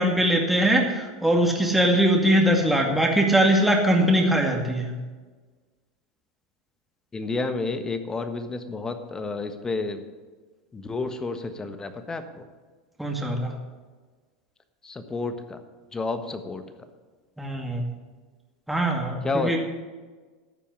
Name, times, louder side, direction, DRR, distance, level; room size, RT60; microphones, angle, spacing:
voice 1, 0.0-4.9 13.0-13.5 17.4-17.8 18.7-19.6, right 1 dB, 5° right, 0 dB, 2.3 m, -21 dB
voice 2, 7.1-10.0 10.7-12.2 14.8-15.6 15.9-16.6 19.2-19.6, left 3 dB, 20° left, 9 dB, 1.4 m, -30 dB
12.5 x 7.1 x 8.3 m, 1.4 s
hypercardioid pair, 100°, 3 cm